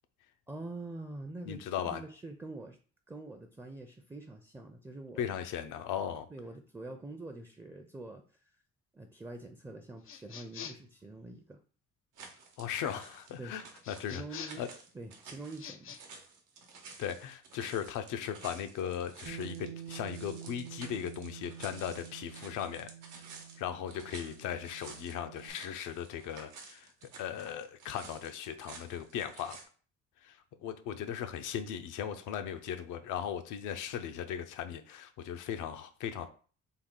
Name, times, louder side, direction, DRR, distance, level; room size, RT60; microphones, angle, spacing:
voice 1, 0.5-2.8 3.1-5.3 6.3-8.2 8.9-11.6 13.4-13.6 14.1-14.6 14.9-16.0, right 2 dB, 10° right, 6 dB, 0.4 m, -45 dB
voice 2, 1.5-2.0 5.2-6.3 12.6-14.7 17.0-22.9 23.6-26.9 27.2-29.6 30.2-36.3, left 9 dB, 90° left, 8 dB, 0.6 m, -38 dB
sound 1, 10.0-10.9 13.8-14.7 15.5-16.0, left 8 dB, 45° left, 0.5 m, -46 dB
sound 2, 12.2-29.6, right 4 dB, 90° right, 0.9 m, -52 dB
Bass guitar, 19.3-25.5, right 9 dB, 60° right, 0.7 m, -48 dB
3.6 x 2.3 x 3.7 m, 0.40 s
cardioid pair, 90°, 30 cm